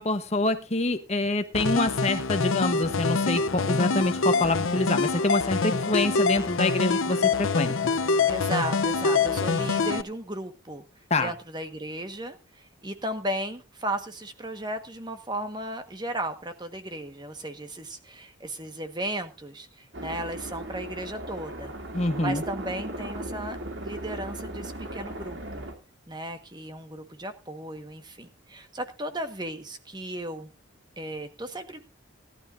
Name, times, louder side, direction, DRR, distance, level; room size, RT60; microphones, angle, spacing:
voice 1, 0.0-7.8 11.1-11.3 21.9-22.4, left 2 dB, 35° left, 9 dB, 1.1 m, -26 dB
sound 1, 1.5-10.0, left 4 dB, 85° left, 0.7 m, -25 dB
voice 2, 8.3-10.8 11.2-21.7 22.2-23.6 23.8-25.6 26.1-30.5 31.0-31.8, right 1 dB, 20° right, 7 dB, 1.4 m, -35 dB
sound 2, 19.9-25.7, right 1 dB, 65° right, 2.7 m, -37 dB
18.5 x 12.0 x 2.6 m, 0.31 s
head